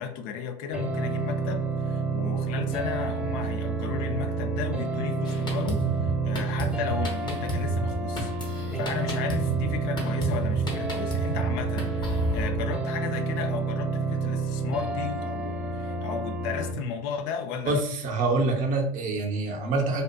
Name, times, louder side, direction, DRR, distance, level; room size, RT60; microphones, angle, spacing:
voice 1, 0.0-17.8, left 7 dB, 55° left, 0.4 m, -34 dB
sound 1, 0.7-16.7, right 4 dB, 5° right, 0.5 m, -29 dB
Drum kit, 5.2-12.5, right 3 dB, 25° left, 0.8 m, -31 dB
voice 2, 17.6-20.0, right 3 dB, 45° right, 0.6 m, -26 dB
2.6 x 2.4 x 2.2 m
hypercardioid pair, 80°, 19 cm